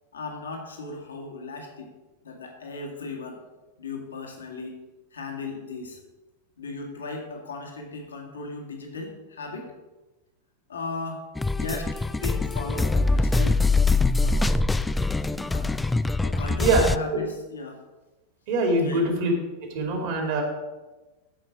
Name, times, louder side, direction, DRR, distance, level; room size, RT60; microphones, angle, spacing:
voice 1, 0.1-1.9 2.2-3.4 3.8-4.8 5.1-6.0 6.6-9.7 10.7-11.3 11.5-13.6 14.2-14.6 15.4-15.8 16.2-17.8 18.8-19.1, left 3 dB, 70° left, 1 dB, 1.9 m, -36 dB
sound 1, 11.4-17.0, left 3 dB, 10° left, 0.3 m, -23 dB
voice 2, 18.5-19.3 19.7-20.4, right 2 dB, 50° right, 2 dB, 2.7 m, -23 dB
14.0 x 5.6 x 4.9 m, 1.1 s
figure-of-eight pair, 90°, 0 cm